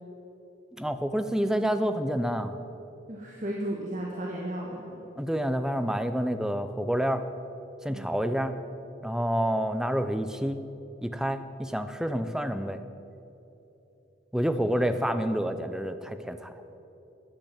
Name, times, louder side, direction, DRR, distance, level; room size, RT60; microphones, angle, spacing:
voice 1, 0.8-2.6 5.2-7.2 7.8-8.5 9.0-10.6 11.0-12.8 14.3-16.5, equal, 5° right, 9 dB, 0.6 m, -28 dB
voice 2, 3.1-5.0 7.9-8.1, right 1 dB, 40° right, -3 dB, 1.6 m, -34 dB
14.0 x 8.9 x 8.8 m, 3.0 s
head